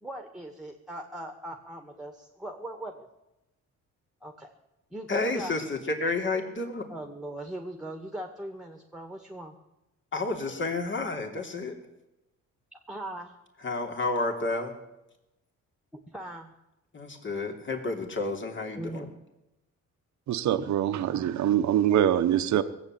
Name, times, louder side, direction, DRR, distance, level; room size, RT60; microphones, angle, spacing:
voice 1, 0.0-3.1 4.2-4.5 4.9-5.6 6.9-9.5 12.7-13.3 16.1-16.5 18.8-19.1, right 1 dB, ahead, 5 dB, 1.9 m, -39 dB
voice 2, 5.1-6.8 10.1-11.8 13.6-14.7 16.9-19.1, left 3 dB, 40° left, 3 dB, 3.1 m, -30 dB
voice 3, 20.3-22.6, right 10 dB, 70° right, 8 dB, 1.0 m, -24 dB
18.5 x 8.2 x 9.1 m, 0.94 s
cardioid pair, 90°, 30 cm